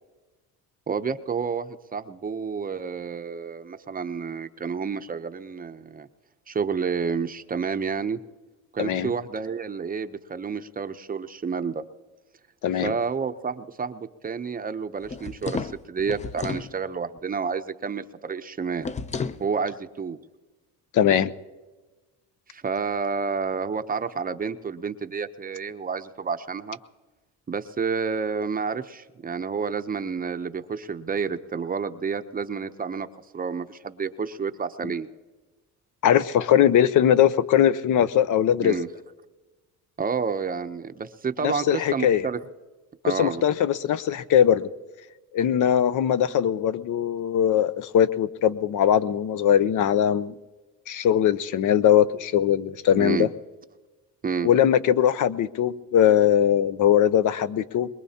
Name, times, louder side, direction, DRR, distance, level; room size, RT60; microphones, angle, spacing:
voice 1, 0.9-6.1 6.5-8.2 8.7-11.8 12.8-18.9 19.4-20.2 22.5-26.8 27.5-33.1 33.3-35.1 38.6-38.9 40.0-42.4 43.0-43.4 52.9-53.3 54.2-54.5, right 5 dB, 25° right, 9 dB, 0.7 m, -30 dB
voice 2, 12.6-12.9 20.9-21.3 36.0-38.8 41.4-42.2 43.2-44.7 45.3-50.4 50.9-53.3 54.4-57.9, left 10 dB, 60° left, 14 dB, 0.7 m, -20 dB
sound 1, 15.0-16.7 18.8-19.4, left 5 dB, 20° left, 0.5 m, -32 dB
23.0 x 21.0 x 2.8 m, 1.2 s
cardioid pair, 120°, 34 cm